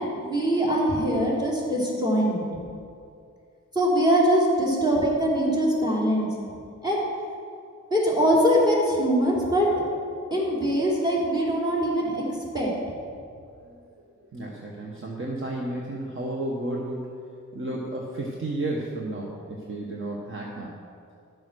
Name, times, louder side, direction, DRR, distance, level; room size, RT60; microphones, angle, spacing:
voice 1, 0.0-2.4 3.7-6.3 6.8-7.0 7.9-9.7 10.3-12.2 12.5-12.7, equal, 15° right, -4 dB, 3.4 m, -22 dB
voice 2, 14.2-17.1 17.5-20.8, right 1 dB, 40° right, -2 dB, 1.3 m, -32 dB
12.0 x 7.2 x 6.3 m, 2.4 s
wide cardioid pair, 110°, 31 cm